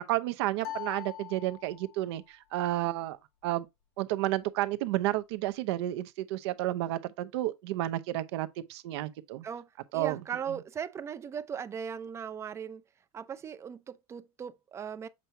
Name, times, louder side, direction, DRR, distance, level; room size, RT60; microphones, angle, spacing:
voice 1, 0.0-3.2 3.4-3.7 4.0-9.4 9.9-10.2, right 15 dB, 75° right, 0.8 m, -31 dB
sound 1, 0.6-2.1, left 13 dB, 65° left, 1.6 m, -42 dB
voice 2, 9.4-12.8 13.1-15.1, right 7 dB, 20° right, 0.4 m, -38 dB
7.5 x 4.6 x 2.7 m
supercardioid pair, 150°, 14 cm